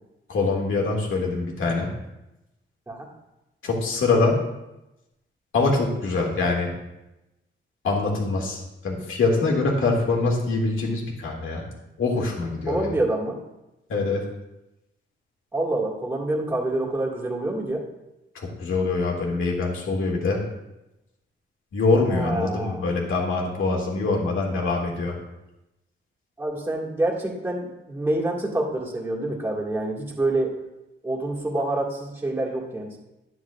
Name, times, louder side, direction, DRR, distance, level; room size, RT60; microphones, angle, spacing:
voice 1, 0.3-1.9 3.6-4.4 5.5-6.7 7.8-11.6 12.0-12.9 13.9-14.3 18.3-20.4 21.7-25.1, left 3 dB, 75° left, -1 dB, 2.0 m, -24 dB
voice 2, 12.7-13.4 15.5-17.8 22.1-22.8 26.4-30.5 31.0-33.0, right 2 dB, 10° right, -4 dB, 1.9 m, -27 dB
11.0 x 9.1 x 2.4 m, 0.95 s
wide cardioid pair, 140°, 21 cm